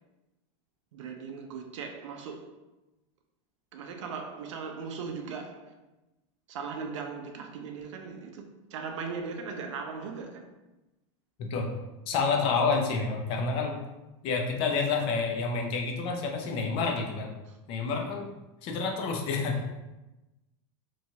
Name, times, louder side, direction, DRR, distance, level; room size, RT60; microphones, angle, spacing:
voice 1, 0.9-2.5 3.7-5.7 6.5-8.5 8.7-10.5 17.5-17.6 19.4-19.7, right 5 dB, 90° right, 0.5 m, -38 dB
voice 2, 12.1-13.8 14.2-17.3 17.7-18.3 18.6-19.6, left 4 dB, 35° left, 0.5 m, -28 dB
3.0 x 2.3 x 2.7 m
supercardioid pair, 155°, 15 cm